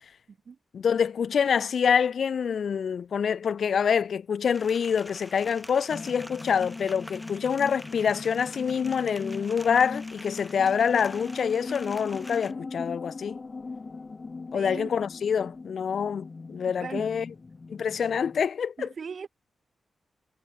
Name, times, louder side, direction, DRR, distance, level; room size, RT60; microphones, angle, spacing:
voice 1, 0.7-13.4 14.5-17.3 17.7-18.9, left 7 dB, 65° left, 0.7 m, -26 dB
sound 1, 4.5-12.5, left 1 dB, 5° left, 3.4 m, -46 dB
sound 2, 5.9-18.4, left 4 dB, 30° left, 2.2 m, -40 dB
voice 2, 14.5-14.9 16.8-17.2 18.8-19.3, right 6 dB, 50° right, 0.4 m, -38 dB
wide cardioid pair, 130°, 0 cm